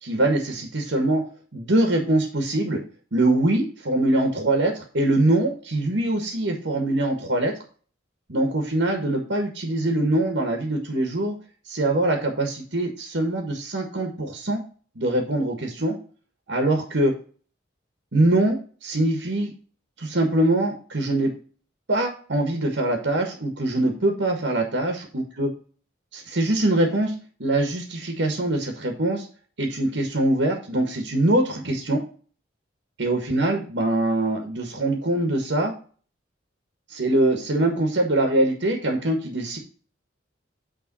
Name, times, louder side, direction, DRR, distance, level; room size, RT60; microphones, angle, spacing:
voice 1, 0.0-1.2 1.5-2.8 3.1-7.5 8.3-11.4 11.7-14.6 14.9-16.0 16.5-17.1 18.1-19.5 20.0-21.3 21.9-25.5 26.1-27.1 27.4-29.3 29.6-32.0 33.0-35.7 36.9-39.6, right 1 dB, 70° right, 3 dB, 1.5 m, -23 dB
8.8 x 3.7 x 5.4 m, 0.41 s
head